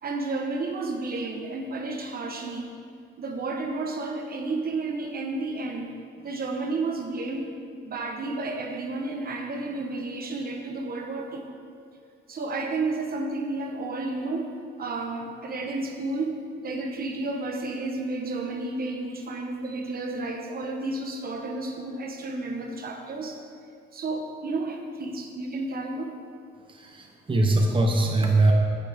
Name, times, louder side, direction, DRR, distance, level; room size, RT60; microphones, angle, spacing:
voice 1, 0.0-2.7 3.2-5.9 6.2-7.5 7.8-11.5 12.3-16.4 16.6-23.4 23.9-26.1, right 2 dB, 50° right, 3 dB, 1.1 m, -31 dB
voice 2, 26.7-28.5, right 2 dB, 25° right, 1 dB, 1.0 m, -22 dB
15.0 x 6.0 x 3.5 m, 2.3 s
cardioid pair, 90°, 20 cm